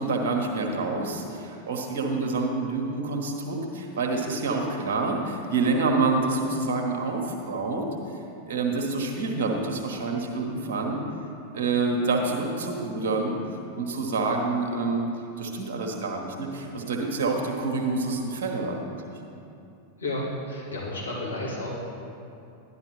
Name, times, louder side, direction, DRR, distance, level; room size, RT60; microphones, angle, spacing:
voice 1, 0.0-7.9 8.5-11.0 11.5-13.4 13.7-15.1 15.4-18.9, right 3 dB, 55° right, 2 dB, 1.2 m, -27 dB
voice 2, 20.0-21.7, left 1 dB, 75° left, -7 dB, 2.5 m, -32 dB
11.0 x 11.0 x 3.1 m, 2.7 s
figure-of-eight pair, 90°, 0 cm